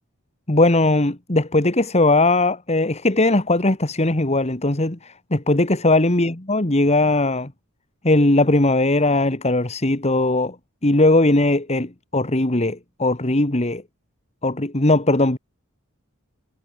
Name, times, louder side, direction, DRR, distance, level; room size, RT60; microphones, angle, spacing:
voice 1, 0.5-7.5 8.0-10.6 10.8-13.8 14.4-15.4, left 2 dB, 30° left, 1.9 m, -19 dB
head